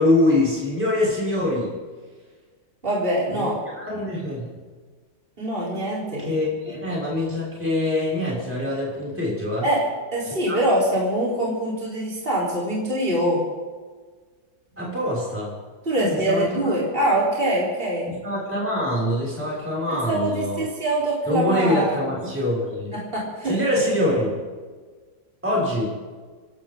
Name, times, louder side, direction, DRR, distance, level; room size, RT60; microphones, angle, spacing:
voice 1, 0.0-1.7 3.3-4.5 6.2-9.7 10.5-10.6 14.8-15.5 16.0-16.7 17.1-17.2 18.1-20.6 21.3-22.9 23.4-24.4 25.4-25.9, left 1 dB, 5° right, -6 dB, 6.2 m, -24 dB
voice 2, 2.8-3.5 5.4-6.3 9.6-9.8 10.1-13.4 15.8-18.1 20.1-22.0 23.1-23.6, right 1 dB, 25° right, -5 dB, 4.2 m, -23 dB
29.0 x 12.0 x 3.9 m, 1.5 s
omnidirectional pair, 2.1 m